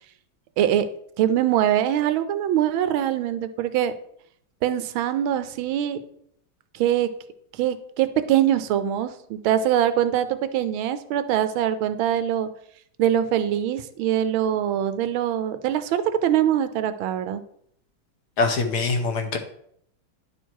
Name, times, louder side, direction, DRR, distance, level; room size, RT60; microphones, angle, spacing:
voice 1, 0.6-0.9 1.2-3.9 4.6-6.0 6.7-7.1 7.5-12.5 13.0-17.4, right 11 dB, 90° right, 12 dB, 1.4 m, -23 dB
voice 2, 18.4-19.4, left 3 dB, 60° left, 5 dB, 1.3 m, -23 dB
10.5 x 4.5 x 4.6 m, 0.69 s
omnidirectional pair, 2.2 m